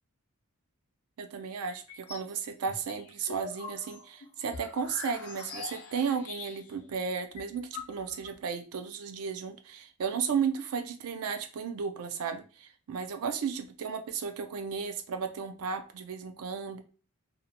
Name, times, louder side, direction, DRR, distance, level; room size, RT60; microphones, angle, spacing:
voice 1, 1.2-16.8, right 6 dB, 85° right, 8 dB, 0.4 m, -34 dB
sound 1, 1.7-2.3 2.7-6.8 7.1-7.2 7.4-8.3, left 5 dB, 85° left, 0.6 m, -44 dB
2.7 x 2.1 x 2.7 m, 0.37 s
head